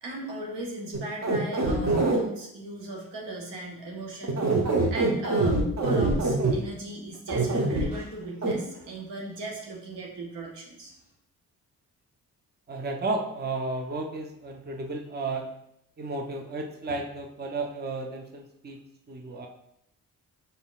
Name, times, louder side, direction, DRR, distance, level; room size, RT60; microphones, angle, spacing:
voice 1, 0.0-4.6 4.9-10.9, right 2 dB, 75° right, -2 dB, 1.3 m, -38 dB
sound 1, 0.9-2.2 4.2-6.5 7.3-7.8 8.4-8.5, right 2 dB, 40° right, 1.1 m, -24 dB
voice 2, 12.7-15.5 16.0-18.8 19.1-19.5, right 3 dB, 25° right, 3 dB, 0.7 m, -33 dB
5.4 x 4.1 x 2.4 m, 0.75 s
hypercardioid pair, 45°, 43 cm